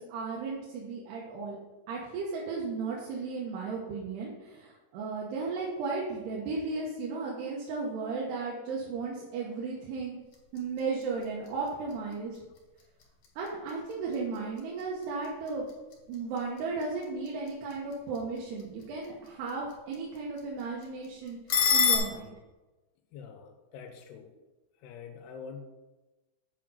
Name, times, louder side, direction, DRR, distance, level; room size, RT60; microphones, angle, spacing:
voice 1, 0.0-1.6 1.9-10.2 10.5-12.4 13.4-15.7 16.1-21.4 21.7-22.4, right 4 dB, 85° right, -4 dB, 3.2 m, -35 dB
sound 1, 10.2-22.0, left 7 dB, 60° left, 2.9 m, -35 dB
voice 2, 23.1-24.3 24.8-25.6, left 6 dB, 90° left, 5 dB, 3.1 m, -45 dB
8.3 x 5.1 x 5.6 m, 1.1 s
omnidirectional pair, 4.6 m